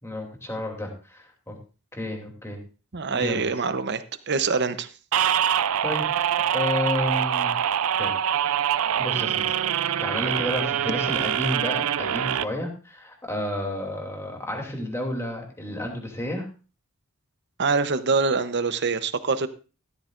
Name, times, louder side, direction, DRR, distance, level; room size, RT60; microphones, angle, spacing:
voice 1, 0.0-1.6 1.9-2.6 3.1-3.4 5.3-5.5 5.8-7.6 8.0-8.1 9.0-16.5, left 1 dB, 15° left, 1 dB, 2.7 m, -31 dB
voice 2, 2.9-4.9 17.6-19.5, right 4 dB, 55° right, 12 dB, 0.8 m, -25 dB
sound 1, 5.1-12.4, right 9 dB, 80° right, 0.5 m, -24 dB
14.5 x 13.0 x 2.5 m, 0.35 s
head